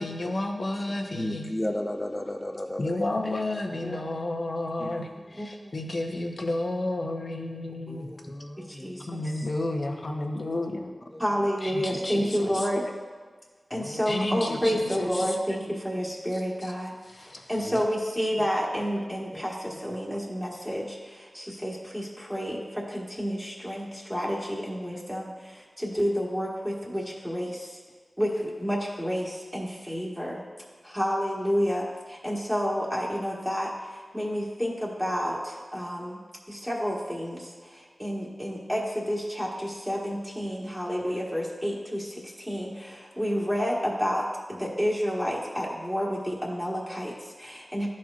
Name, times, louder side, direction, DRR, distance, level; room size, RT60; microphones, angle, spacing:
voice 1, 0.0-1.5 2.8-8.1 9.1-10.9 11.6-12.7 14.1-15.4 16.3-16.7 17.0-17.5, left 2 dB, 55° left, 2 dB, 0.9 m, -31 dB
voice 2, 1.1-3.0 3.4-3.5 4.8-5.0 7.9-9.1 9.4-9.5 11.1-11.2 13.7-14.0 15.7-15.8 17.6-17.8 18.4-18.5 19.3-19.4, left 1 dB, 25° left, 4 dB, 0.7 m, -35 dB
voice 3, 3.8-4.1 5.4-5.7 8.6-9.2 11.2-12.9 13.7-27.8 28.2-30.4 30.8-36.2 36.5-47.9, equal, 5° right, -5 dB, 1.4 m, -30 dB
12.0 x 4.3 x 2.5 m, 1.4 s
cardioid pair, 40°, 0 cm